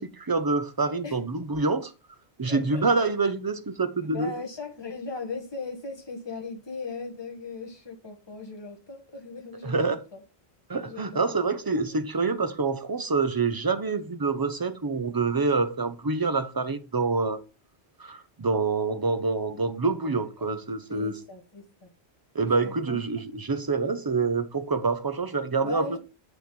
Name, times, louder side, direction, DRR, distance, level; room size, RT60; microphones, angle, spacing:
voice 1, 0.0-1.9 2.4-4.3 9.6-10.0 10.7-17.4 18.0-21.1 22.3-25.9, right 4 dB, 25° right, 0.7 m, -26 dB
voice 2, 2.4-3.1 4.1-10.2 10.8-11.5 11.9-12.0 19.8-20.6 20.9-21.9 22.6-23.0 25.6-26.0, left 3 dB, 25° left, 1.6 m, -39 dB
7.9 x 5.0 x 5.2 m
omnidirectional pair, 1.1 m